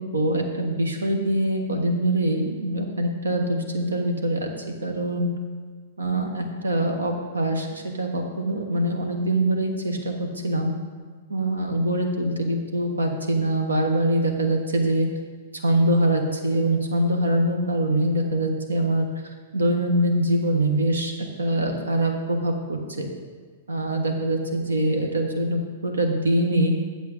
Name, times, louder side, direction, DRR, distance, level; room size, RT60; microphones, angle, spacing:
voice 1, 0.0-4.5 4.8-5.3 6.0-10.7 11.3-15.1 15.6-19.1 19.5-21.1 21.4-23.1 23.7-26.7, right 1 dB, 85° right, 3 dB, 1.3 m, -24 dB
8.2 x 7.0 x 5.2 m, 1.5 s
hypercardioid pair, 110°, 0 cm